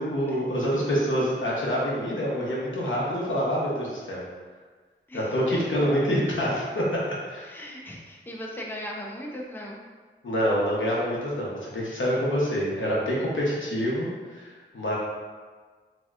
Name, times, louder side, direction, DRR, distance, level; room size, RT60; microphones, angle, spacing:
voice 1, 0.0-4.2 5.1-7.5 10.2-15.0, equal, 75° left, -5 dB, 0.8 m, -26 dB
voice 2, 5.1-5.6 7.4-9.8, equal, 10° left, -2 dB, 0.5 m, -38 dB
3.1 x 2.8 x 2.4 m, 1.5 s
cardioid pair, 45°, 20 cm